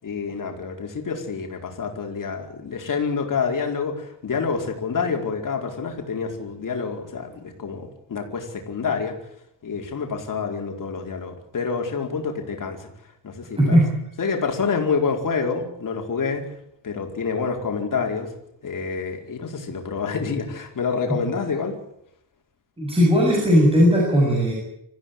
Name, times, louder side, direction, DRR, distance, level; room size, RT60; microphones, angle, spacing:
voice 1, 0.0-9.1 9.6-12.9 13.2-13.8 14.2-16.4 16.8-18.3 18.6-21.8, left 5 dB, 45° left, 3 dB, 4.7 m, -27 dB
voice 2, 13.6-13.9 21.1-21.2 22.8-24.5, equal, 15° right, -3 dB, 7.4 m, -17 dB
25.5 x 15.0 x 9.3 m, 0.76 s
cardioid pair, 145°, 43 cm